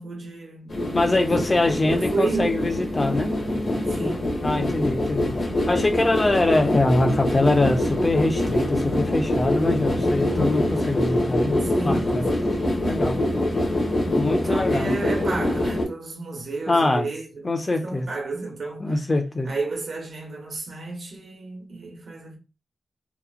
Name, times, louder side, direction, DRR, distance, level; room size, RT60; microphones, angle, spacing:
voice 1, 0.0-1.3 1.8-2.6 3.8-4.8 11.6-13.4 14.4-19.0 19.4-22.4, right 3 dB, 80° right, 1.0 m, -32 dB
sound 1, 0.7-15.8, left 1 dB, 70° left, 1.0 m, -24 dB
voice 2, 0.9-3.3 4.0-4.1 4.4-5.3 5.7-12.3 12.8-13.2 14.1-14.9 16.7-17.1 17.4-18.1 18.8-19.5, left 2 dB, 30° left, 0.5 m, -23 dB
2.8 x 2.0 x 2.4 m
wide cardioid pair, 120°, 0 cm